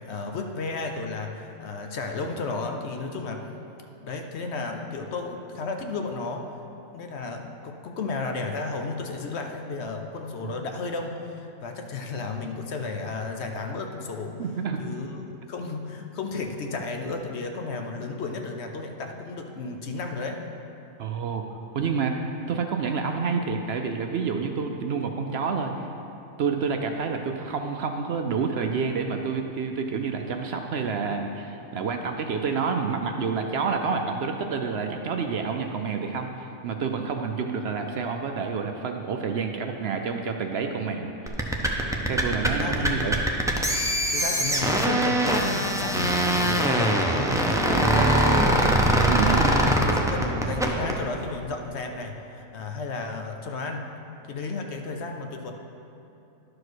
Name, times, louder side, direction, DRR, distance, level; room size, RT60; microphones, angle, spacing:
voice 1, 0.0-3.5 4.0-6.5 6.9-14.4 14.8-15.2 15.5-20.4 42.4-43.0 44.1-48.5 49.2-49.7 50.0-53.8 54.3-55.5, left 3 dB, 60° left, 4 dB, 0.9 m, -33 dB
voice 2, 14.4-14.8 21.0-21.5 21.7-22.2 22.5-25.9 26.4-41.5 42.1-43.2 47.9-48.2 49.1-49.5, right 5 dB, 65° right, 4 dB, 0.7 m, -28 dB
sound 1, 41.3-51.0, right 1 dB, 5° right, 0.3 m, -22 dB
11.0 x 4.9 x 6.2 m, 2.9 s
omnidirectional pair, 1.4 m